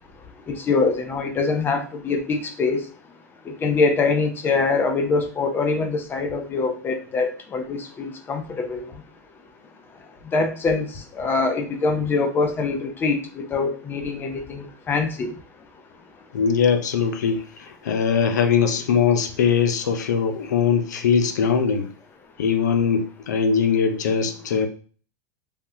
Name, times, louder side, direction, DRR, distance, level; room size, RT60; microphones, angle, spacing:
voice 1, 0.5-2.8 3.5-8.8 10.3-10.9 11.2-15.3, left 4 dB, 20° left, 5 dB, 0.5 m, -24 dB
voice 2, 16.3-21.9 22.4-24.7, left 6 dB, 90° left, 7 dB, 0.5 m, -21 dB
3.4 x 2.2 x 2.7 m, 0.40 s
hypercardioid pair, 125°, 9 cm